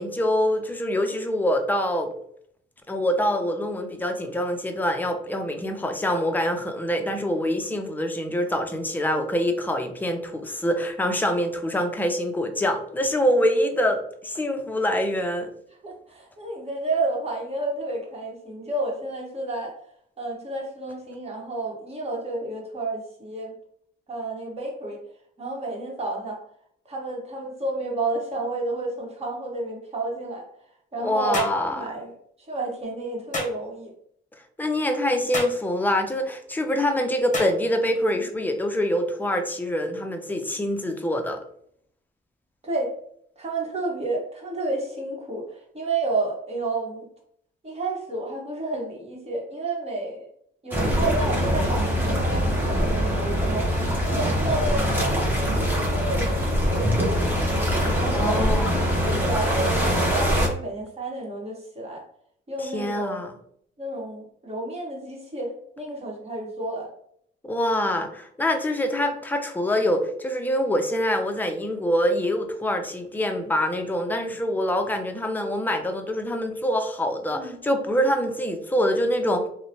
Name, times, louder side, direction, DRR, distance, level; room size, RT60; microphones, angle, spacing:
voice 1, 0.0-2.1 2.9-15.5 31.0-31.8 34.6-41.4 58.1-58.9 62.6-63.3 67.4-79.5, equal, 10° left, 5 dB, 0.4 m, -25 dB
voice 2, 15.8-19.8 20.2-23.5 24.1-25.0 25.4-26.4 26.9-30.4 30.9-32.1 32.4-33.9 38.1-38.3 42.6-42.9 43.4-47.1 47.6-50.3 50.6-53.6 54.1-55.2 55.5-57.6 57.9-62.0 62.5-63.2 63.8-66.9 77.3-77.6, right 2 dB, 30° right, -1 dB, 1.1 m, -31 dB
sound 1, 31.3-31.6 33.3-33.6 35.3-35.6 37.3-37.6, left 2 dB, 40° left, 0.7 m, -30 dB
sound 2, 50.7-60.5, equal, 10° right, 0.8 m, -23 dB
2.9 x 2.0 x 2.7 m, 0.67 s
cardioid pair, 90°, 20 cm